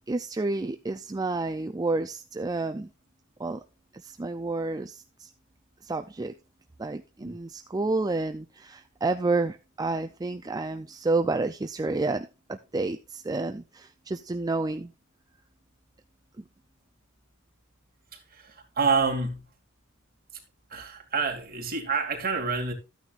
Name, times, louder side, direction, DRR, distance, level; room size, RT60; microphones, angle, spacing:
voice 1, 0.1-2.9 3.4-3.6 3.9-5.3 5.8-6.3 6.8-14.9 16.4-16.5, right 3 dB, 20° right, 0.4 m, -30 dB
voice 2, 18.1-19.4 20.7-22.7, right 4 dB, 45° right, 2.6 m, -28 dB
13.5 x 9.3 x 2.5 m
head